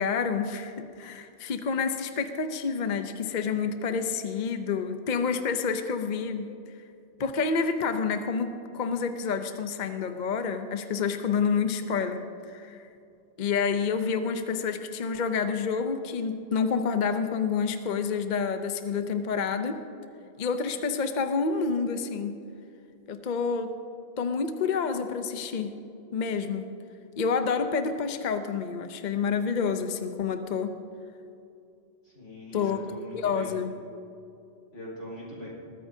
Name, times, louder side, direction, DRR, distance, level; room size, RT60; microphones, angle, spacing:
voice 1, 0.0-6.5 7.2-12.2 12.5-12.8 13.4-19.8 20.4-22.4 23.1-23.7 24.2-25.7 26.1-26.7 27.2-30.7 32.5-32.8 33.1-33.7, left 5 dB, 45° left, 8 dB, 0.7 m, -28 dB
voice 2, 32.0-33.5 34.7-35.5, left 1 dB, 85° left, -5 dB, 4.5 m, -41 dB
21.0 x 14.0 x 2.7 m, 2.7 s
omnidirectional pair, 1.2 m